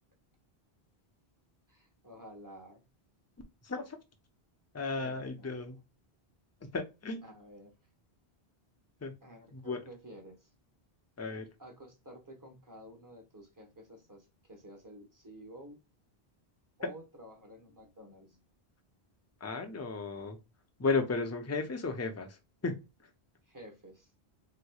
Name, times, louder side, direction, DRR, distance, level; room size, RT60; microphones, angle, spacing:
voice 1, 1.7-2.8 5.0-5.5 7.2-7.7 9.2-10.5 11.6-15.8 16.8-18.4 23.4-24.1, equal, 20° right, 2 dB, 1.0 m, -51 dB
voice 2, 3.6-4.0 4.7-5.8 6.7-7.2 9.0-9.1 9.5-9.8 11.2-11.5 19.4-20.4 20.8-22.8, left 4 dB, 20° left, 5 dB, 0.5 m, -34 dB
3.7 x 3.1 x 2.2 m, 0.25 s
omnidirectional pair, 1.0 m